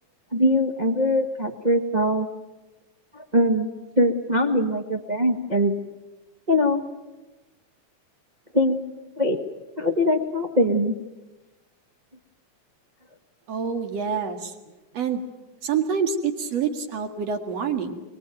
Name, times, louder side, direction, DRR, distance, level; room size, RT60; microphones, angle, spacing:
voice 1, 0.3-2.3 3.1-3.7 4.0-5.7 6.5-6.8 8.5-8.8 9.2-9.4 9.8-11.0, left 1 dB, 30° right, 3 dB, 0.7 m, -22 dB
voice 2, 13.5-14.5 14.9-15.2 15.6-18.0, right 6 dB, 60° right, 6 dB, 3.0 m, -26 dB
23.5 x 21.5 x 9.2 m, 1.1 s
omnidirectional pair, 3.4 m